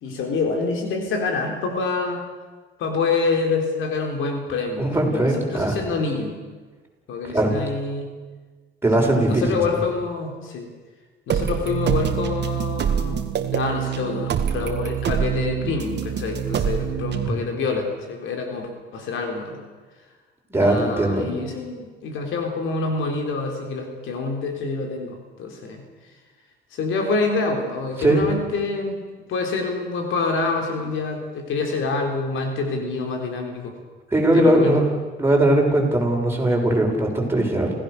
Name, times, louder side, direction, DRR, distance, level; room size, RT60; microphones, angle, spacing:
voice 1, 0.0-2.2 2.8-6.4 7.1-8.1 9.0-10.7 11.3-19.6 20.6-25.8 26.7-29.0 29.3-33.7 34.3-34.8, left 4 dB, 85° left, 4 dB, 3.9 m, -26 dB
voice 2, 4.8-5.8 7.3-7.6 8.8-9.6 17.2-17.4 20.5-21.3 28.0-28.2 34.1-34.8 35.2-37.7, right 1 dB, 10° right, -1 dB, 6.7 m, -19 dB
sound 1, 11.3-17.3, right 9 dB, 60° right, 1.7 m, -25 dB
28.5 x 17.0 x 6.8 m, 1.3 s
cardioid pair, 90°, 20 cm